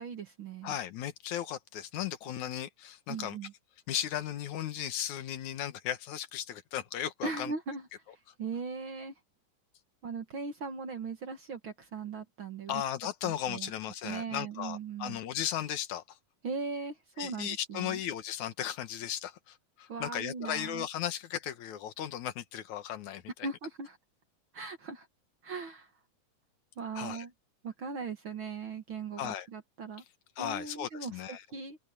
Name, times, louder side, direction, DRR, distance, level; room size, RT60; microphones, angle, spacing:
voice 1, 0.0-0.8 3.1-3.5 7.2-9.1 10.0-12.8 13.2-13.7 14.0-15.2 16.4-18.0 19.9-20.9 23.4-24.0 24.5-25.1 25.4-25.9 26.8-27.3 27.6-30.0 30.4-31.8, right 5 dB, 50° right, 1.7 m, -39 dB
voice 2, 0.6-3.4 3.9-7.5 12.7-16.0 17.2-23.5 27.0-27.2 29.2-29.5 30.4-31.4, left 11 dB, 65° left, 2.7 m, -36 dB
open air
omnidirectional pair, 3.7 m